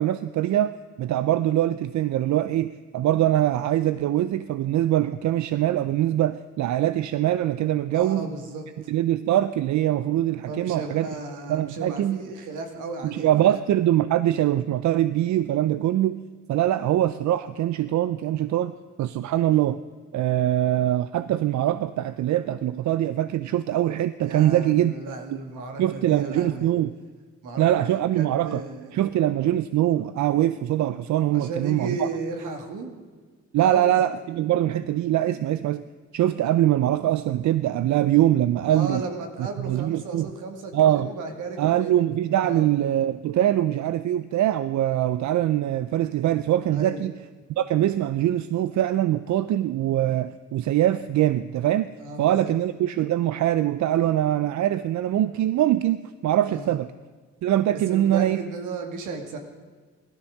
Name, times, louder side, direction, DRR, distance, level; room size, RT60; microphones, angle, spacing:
voice 1, 0.0-8.3 8.9-11.1 11.5-12.2 13.0-16.2 16.5-18.7 19.0-19.8 20.1-24.9 25.8-26.9 27.6-28.6 28.9-32.1 33.5-35.8 36.1-39.0 39.4-40.3 40.7-41.1 41.6-47.1 47.6-51.9 52.2-56.9 57.4-58.4, right 12 dB, 70° right, 13 dB, 0.6 m, -23 dB
voice 2, 7.9-8.9 10.5-13.5 24.2-26.7 27.4-29.1 31.3-32.9 33.6-33.9 38.7-41.9 42.4-42.7 46.7-47.1 52.0-52.6 56.5-56.8 57.9-59.4, right 3 dB, 85° right, 4 dB, 2.4 m, -35 dB
16.5 x 13.0 x 6.6 m, 1.5 s
cardioid pair, 90°, 30 cm